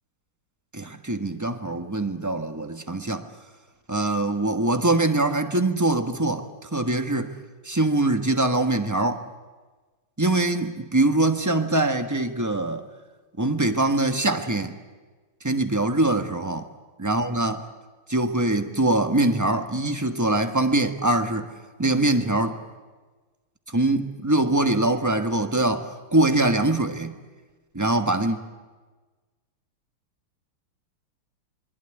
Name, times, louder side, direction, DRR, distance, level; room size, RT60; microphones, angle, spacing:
voice 1, 0.7-3.2 3.9-7.3 7.6-9.2 10.2-12.9 13.4-14.7 15.4-16.6 17.0-17.6 18.1-21.5 21.8-22.6 23.7-27.2 27.7-28.4, right 2 dB, 10° right, 6 dB, 1.1 m, -23 dB
27.0 x 21.0 x 10.0 m, 1.3 s
omnidirectional pair, 2.4 m